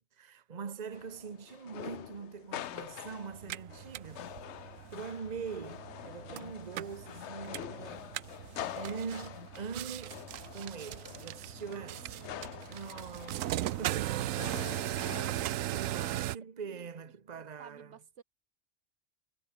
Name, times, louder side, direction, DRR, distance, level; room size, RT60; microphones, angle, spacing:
voice 1, 0.0-8.1 8.8-12.3 12.7-14.2 15.7-18.0, right 6 dB, 35° right, 1.2 m, -43 dB
sound 1, 0.9-15.5, left 11 dB, 65° left, 0.9 m, -46 dB
Alarm, 2.6-9.7, left 6 dB, 90° left, 2.1 m, -57 dB
sound 2, 3.3-16.4, right 14 dB, 85° right, 1.0 m, -38 dB
voice 2, 11.7-12.3 16.7-16.8 17.6-18.2, right 7 dB, 65° right, 1.3 m, -55 dB
omnidirectional pair, 1.3 m